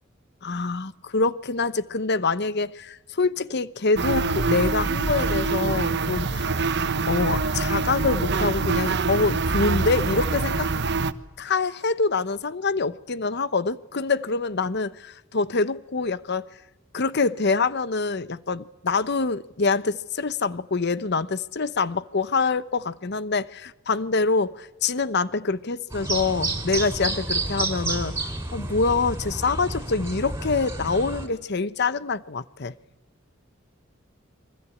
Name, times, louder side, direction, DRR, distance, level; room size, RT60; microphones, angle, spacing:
voice 1, 0.4-6.7 7.1-10.7 11.4-16.4 16.9-28.1 28.5-32.7, left 4 dB, 55° left, 1.0 m, -25 dB
sound 1, 4.0-11.1, right 4 dB, 60° right, 1.3 m, -25 dB
sound 2, 25.9-31.3, right 2 dB, 15° right, 4.6 m, -30 dB
29.0 x 24.0 x 8.6 m
head